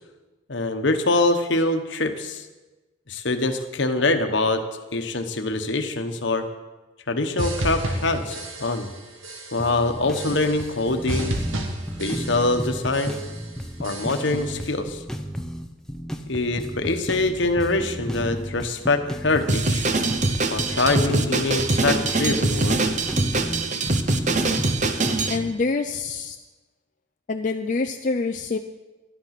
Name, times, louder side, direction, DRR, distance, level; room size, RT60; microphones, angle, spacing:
voice 1, 0.5-2.4 3.1-6.4 7.1-8.9 9.5-11.3 12.0-13.1 13.8-15.0 16.3-19.8 20.5-22.8, left 2 dB, 60° left, 7 dB, 1.1 m, -24 dB
sound 1, 7.4-9.0 9.2-9.7 10.1-10.8 11.1-12.7 12.9-13.4 13.8-14.5, right 1 dB, 80° right, 1.7 m, -31 dB
sound 2, 9.6-25.5, equal, 5° left, 0.7 m, -33 dB
Drum kit, 19.5-25.4, right 3 dB, 35° right, 0.8 m, -23 dB
voice 2, 25.3-26.4 27.3-28.6, left 3 dB, 40° left, 5 dB, 0.4 m, -26 dB
12.0 x 11.0 x 5.9 m, 1.2 s
head